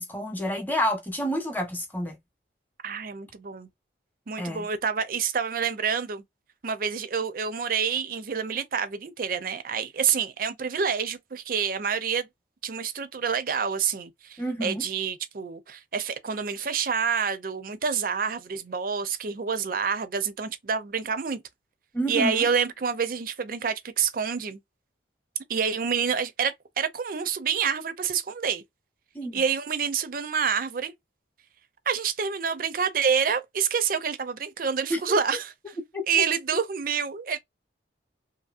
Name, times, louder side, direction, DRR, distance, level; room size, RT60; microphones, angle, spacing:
voice 1, 0.0-2.2 4.4-4.7 14.4-14.8 21.9-22.5 29.1-29.4 34.9-35.2 35.9-36.0, equal, 10° left, 0.8 m, -29 dB
voice 2, 2.8-3.7 4.3-6.2 6.6-12.3 12.6-21.4 22.1-24.6 25.5-28.6 29.3-30.9 31.9-35.5 36.1-37.4, right 6 dB, 50° right, 0.5 m, -27 dB
2.7 x 2.7 x 2.4 m
head